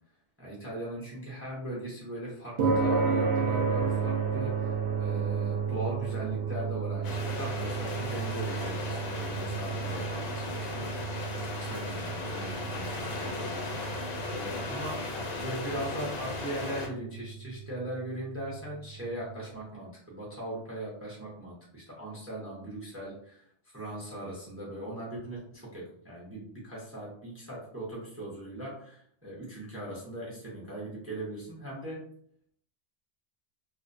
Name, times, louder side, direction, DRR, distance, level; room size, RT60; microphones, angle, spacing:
voice 1, 0.4-11.2 11.6-15.1 15.4-32.0, right 1 dB, 20° right, -5 dB, 0.4 m, -39 dB
sound 1, 2.6-19.1, right 5 dB, 60° right, 0.7 m, -33 dB
sound 2, 7.0-16.9, left 2 dB, 65° left, 0.8 m, -36 dB
2.5 x 2.1 x 2.5 m, 0.64 s
omnidirectional pair, 1.2 m